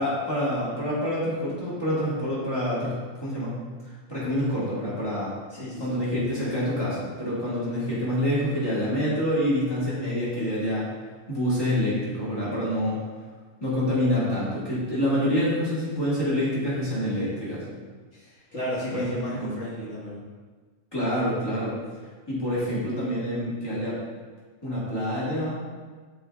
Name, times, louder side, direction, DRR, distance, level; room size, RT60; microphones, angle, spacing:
voice 1, 0.0-3.7 4.1-5.3 5.8-10.9 11.3-13.0 13.6-17.7 18.9-19.6 20.9-21.8 22.3-24.0 24.6-25.5, equal, 20° left, -9 dB, 2.3 m, -27 dB
voice 2, 5.5-6.0 18.1-20.2, left 1 dB, 70° left, -9 dB, 2.2 m, -33 dB
12.0 x 4.4 x 2.6 m, 1.4 s
omnidirectional pair, 1.3 m